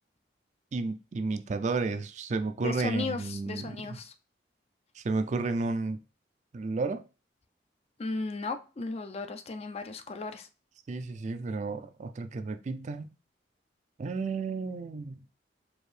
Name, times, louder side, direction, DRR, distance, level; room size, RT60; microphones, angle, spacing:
voice 1, 0.7-4.0 5.0-6.0 6.5-7.0 10.9-13.1 14.0-15.3, right 3 dB, 40° right, 0.3 m, -32 dB
voice 2, 2.6-4.1 8.0-10.5, left 3 dB, 35° left, 0.4 m, -35 dB
4.5 x 2.7 x 3.2 m
head